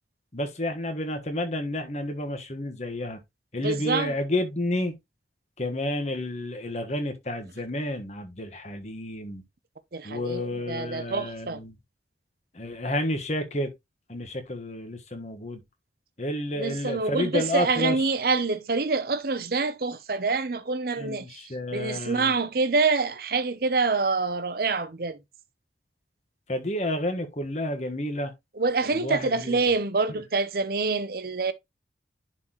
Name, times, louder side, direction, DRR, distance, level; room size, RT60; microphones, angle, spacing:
voice 1, 0.3-3.2 3.5-4.9 5.6-9.4 10.0-11.7 12.5-13.7 14.1-15.6 16.2-18.1 21.0-22.3 26.5-28.3 28.9-29.6, left 1 dB, 40° left, 1.4 m, -30 dB
voice 2, 3.6-4.2 9.9-11.6 16.6-21.4 21.7-25.2 28.5-31.5, right 4 dB, 55° right, 0.7 m, -26 dB
10.5 x 4.0 x 3.0 m
head